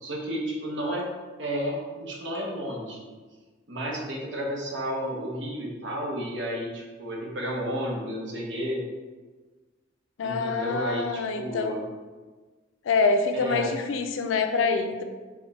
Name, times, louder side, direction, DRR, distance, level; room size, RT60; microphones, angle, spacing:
voice 1, 0.0-1.0 1.4-3.0 3.7-8.8 10.2-11.8 13.3-13.7, equal, 70° right, -1 dB, 0.8 m, -32 dB
voice 2, 10.2-11.7 12.9-15.0, left 4 dB, 85° left, 6 dB, 0.4 m, -25 dB
4.2 x 2.1 x 4.0 m, 1.3 s
head